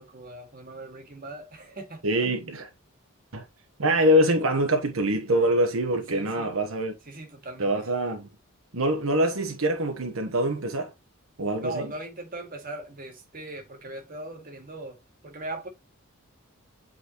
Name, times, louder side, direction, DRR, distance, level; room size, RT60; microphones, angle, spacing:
voice 1, 0.0-2.0 6.1-6.5 7.1-7.8 11.6-15.0 15.2-15.7, right 2 dB, 40° right, 2.1 m, -39 dB
voice 2, 2.0-2.7 3.3-3.4 3.8-7.0 7.6-8.3 8.7-10.9 11.4-11.9, right 1 dB, 75° right, 1.1 m, -24 dB
8.2 x 4.1 x 3.0 m
head